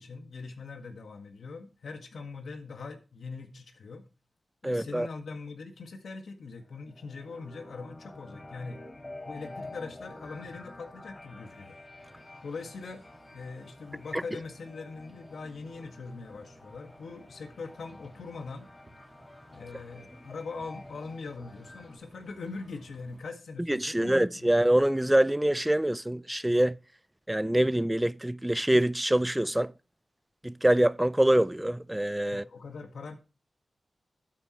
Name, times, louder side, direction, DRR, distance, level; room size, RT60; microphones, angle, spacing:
voice 1, 0.0-4.0 4.6-8.8 9.3-11.8 12.4-13.0 13.3-18.7 19.5-24.1 24.4-24.6 32.3-33.1, left 4 dB, 85° left, 1.7 m, -42 dB
voice 2, 4.6-5.1 14.1-14.2 23.7-26.8 27.3-29.7 30.4-32.4, right 1 dB, 10° right, 0.4 m, -25 dB
sound 1, 6.6-22.0, left 2 dB, 30° left, 5.8 m, -49 dB
sound 2, 12.0-23.2, right 1 dB, 30° right, 2.2 m, -58 dB
12.0 x 9.0 x 3.1 m
wide cardioid pair, 75°, 0 cm